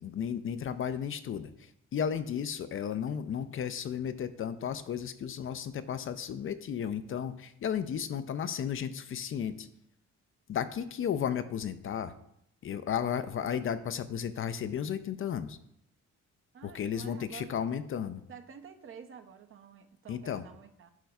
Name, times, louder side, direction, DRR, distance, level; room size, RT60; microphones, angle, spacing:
voice 1, 0.0-9.7 10.5-12.1 12.6-15.6 16.6-18.2 20.1-20.4, left 8 dB, 45° left, 13 dB, 0.4 m, -34 dB
voice 2, 16.5-17.6 18.3-20.9, right 7 dB, 45° right, 8 dB, 0.6 m, -49 dB
10.5 x 4.6 x 2.3 m, 0.76 s
cardioid pair, 90°, 30 cm